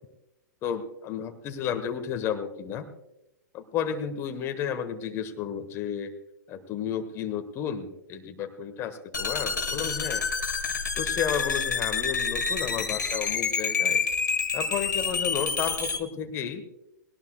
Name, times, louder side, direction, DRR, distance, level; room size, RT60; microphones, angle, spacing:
voice 1, 0.6-2.9 3.5-6.1 6.5-10.2 11.0-14.0 14.5-16.6, left 8 dB, 25° left, 7 dB, 1.3 m, -32 dB
sound 1, 9.1-16.0, left 5 dB, 70° left, 1.5 m, -28 dB
19.5 x 18.0 x 2.3 m, 0.91 s
figure-of-eight pair, 110°, 10 cm